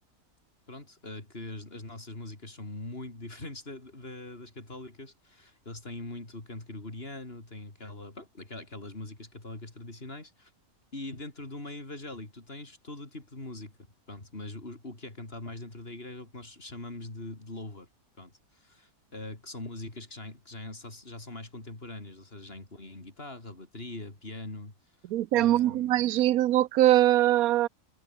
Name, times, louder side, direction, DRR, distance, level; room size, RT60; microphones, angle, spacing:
voice 1, 0.7-10.5 10.9-13.7 14.1-17.9 18.2-24.7 25.3-26.0, left 2 dB, 40° left, 4.2 m, -42 dB
voice 2, 25.1-27.7, right 14 dB, 80° right, 1.1 m, -22 dB
omnidirectional pair, 1.5 m